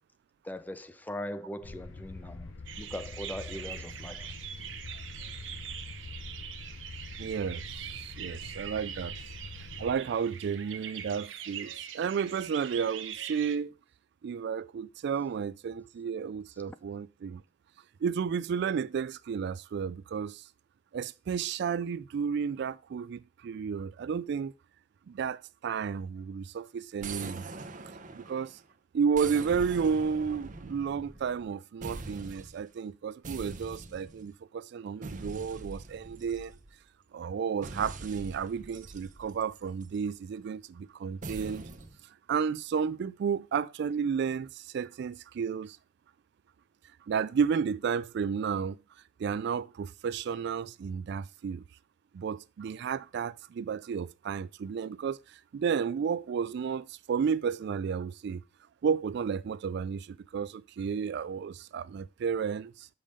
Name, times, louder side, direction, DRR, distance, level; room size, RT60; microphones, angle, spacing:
voice 1, 0.4-4.3, left 1 dB, 10° left, 0.5 m, -40 dB
sound 1, 1.6-9.9, left 3 dB, 85° left, 0.7 m, -45 dB
sound 2, 2.7-13.6, right 9 dB, 80° right, 0.8 m, -43 dB
voice 2, 7.2-9.1 9.8-13.8 14.2-17.4 18.0-20.5 20.9-24.5 25.1-27.4 28.1-28.6 28.9-36.6 37.1-41.7 42.3-45.8 47.1-48.8 49.2-51.6 52.1-58.4 58.8-62.9, right 6 dB, 60° right, 0.3 m, -32 dB
sound 3, 27.0-28.6 29.1-31.5 31.8-32.7 33.2-34.3 35.0-36.9 37.6-40.0 41.2-42.0, right 3 dB, 45° right, 0.8 m, -43 dB
6.8 x 5.4 x 5.1 m
head